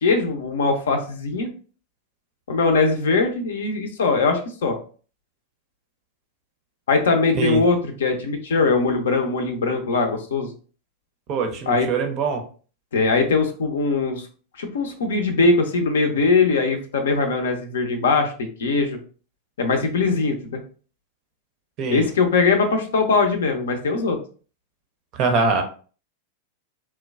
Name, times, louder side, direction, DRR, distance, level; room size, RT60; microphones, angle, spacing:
voice 1, 0.0-1.5 2.5-4.8 6.9-10.5 11.7-11.9 12.9-14.3 14.6-19.0 19.6-20.6 21.9-24.2, left 4 dB, 65° left, 5 dB, 0.5 m, -21 dB
voice 2, 11.3-12.4 21.8-22.1 25.1-25.6, right 4 dB, 40° right, 5 dB, 0.5 m, -23 dB
3.0 x 2.1 x 2.3 m, 0.39 s
figure-of-eight pair, 90°, 0 cm